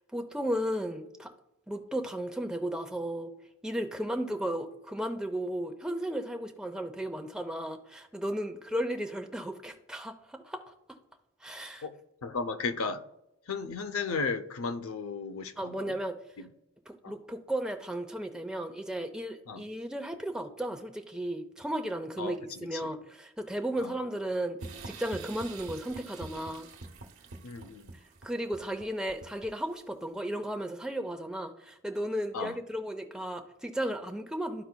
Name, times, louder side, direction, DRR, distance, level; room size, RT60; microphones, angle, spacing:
voice 1, 0.1-1.3 1.7-3.3 3.6-10.6 11.4-11.9 15.6-16.2 16.9-26.7 28.2-34.6, right 1 dB, 5° right, 0.6 m, -34 dB
voice 2, 11.8-13.0 13.5-15.9 17.0-17.1 19.5-19.6 22.2-22.4 22.8-22.9 23.8-23.9 27.4-27.9 32.3-32.5, left 4 dB, 85° left, 0.6 m, -34 dB
sound 1, 24.6-29.8, right 3 dB, 70° right, 0.9 m, -46 dB
13.5 x 4.6 x 2.2 m
head